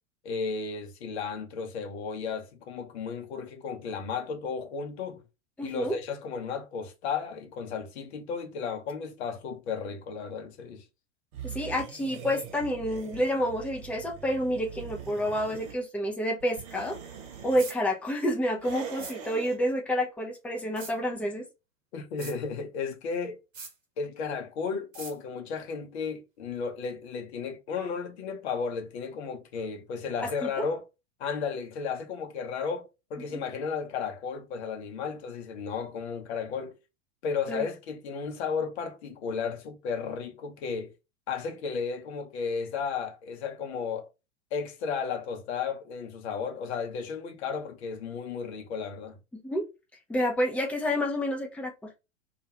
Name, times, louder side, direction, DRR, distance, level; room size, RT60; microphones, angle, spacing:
voice 1, 0.2-5.2 5.6-10.8 21.9-23.4 24.0-30.8 31.2-36.7 37.2-40.9 41.3-44.1 44.5-49.2, left 5 dB, 55° left, 0.8 m, -34 dB
voice 2, 5.6-6.0 11.4-17.0 17.4-21.4 30.2-30.5 37.5-37.7 49.4-49.6 50.1-51.9, equal, 5° left, 0.4 m, -29 dB
sound 1, 11.3-15.8 16.4-17.7 18.6-19.6, right 8 dB, 45° right, 0.9 m, -42 dB
sound 2, 17.6-17.8 19.0-19.2 20.8-20.9 22.2-22.4 23.5-23.7 24.9-25.1, right 4 dB, 80° right, 0.9 m, -41 dB
2.4 x 2.3 x 2.9 m
figure-of-eight pair, 90°, 39 cm